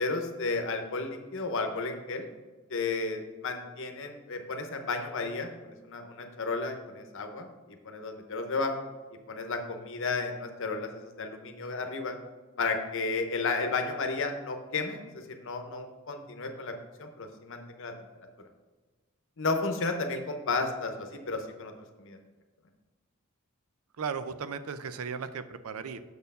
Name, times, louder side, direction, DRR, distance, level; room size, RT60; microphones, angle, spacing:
voice 1, 0.0-2.3 2.7-7.5 7.8-8.7 9.3-12.1 12.6-16.7 17.0-17.9 19.4-21.7 22.0-22.2, left 3 dB, 65° left, 5 dB, 0.9 m, -33 dB
voice 2, 24.0-26.0, right 6 dB, 80° right, 12 dB, 0.5 m, -36 dB
6.7 x 4.4 x 5.4 m, 1.3 s
head